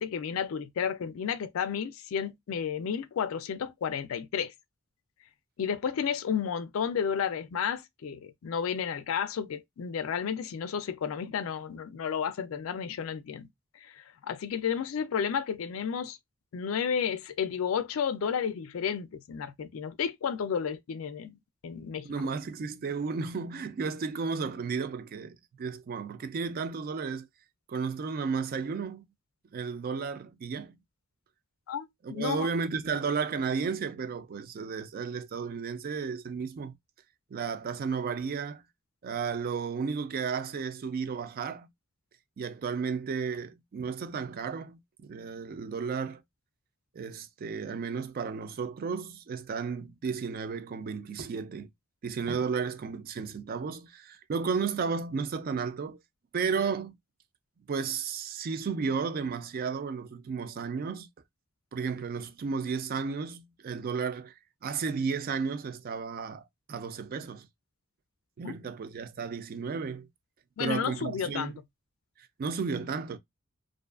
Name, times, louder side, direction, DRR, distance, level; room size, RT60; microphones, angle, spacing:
voice 1, 0.0-4.5 5.6-13.5 13.8-16.2 16.5-22.1 31.7-32.5 68.4-68.5 70.6-71.5, left 7 dB, 75° left, 0.4 m, -32 dB
voice 2, 22.0-27.3 27.7-29.0 29.5-30.8 32.0-36.7 37.3-38.6 39.0-41.7 42.4-46.2 46.9-51.7 52.0-56.0 56.3-56.9 57.7-61.1 61.7-64.3 64.6-66.4 66.7-67.5 68.4-70.1 70.6-71.6 72.2-73.2, right 5 dB, 45° right, 0.4 m, -33 dB
2.5 x 2.2 x 2.3 m
head